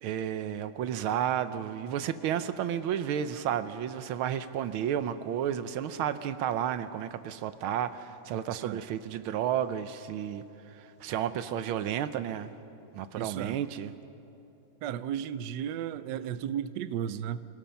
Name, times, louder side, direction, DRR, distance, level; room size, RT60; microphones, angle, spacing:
voice 1, 0.0-12.5 12.9-13.9, right 9 dB, 85° right, 12 dB, 1.6 m, -32 dB
voice 2, 8.5-8.8 13.2-13.6 14.8-17.5, right 9 dB, 70° right, 13 dB, 1.1 m, -34 dB
28.5 x 17.5 x 5.8 m, 2.8 s
omnidirectional pair, 2.2 m